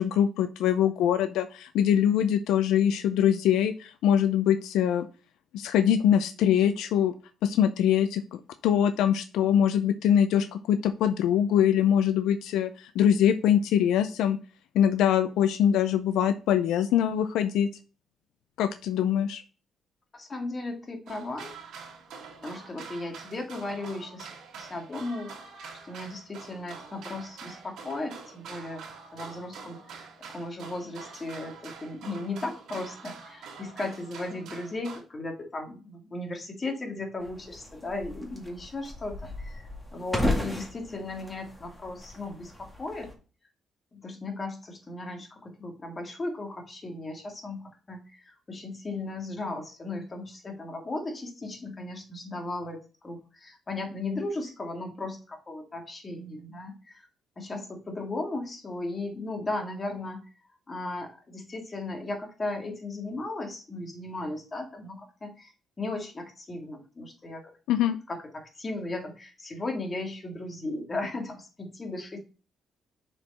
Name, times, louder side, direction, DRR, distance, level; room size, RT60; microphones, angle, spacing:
voice 1, 0.0-5.1 5.5-7.1 7.4-8.2 8.6-14.4 14.7-17.7 18.6-19.4 67.7-68.0, left 9 dB, 85° left, 11 dB, 0.4 m, -23 dB
voice 2, 20.1-21.5 22.4-25.3 25.8-28.8 29.1-43.1 43.9-57.1 57.4-60.3 60.7-65.5 65.8-67.5 68.1-72.2, left 2 dB, 30° left, 2 dB, 2.1 m, -36 dB
sound 1, 21.1-35.0, right 5 dB, 80° right, 2.7 m, -45 dB
sound 2, 37.2-43.1, left 1 dB, 10° left, 1.9 m, -35 dB
6.5 x 4.6 x 4.2 m, 0.35 s
cardioid pair, 90°, 0 cm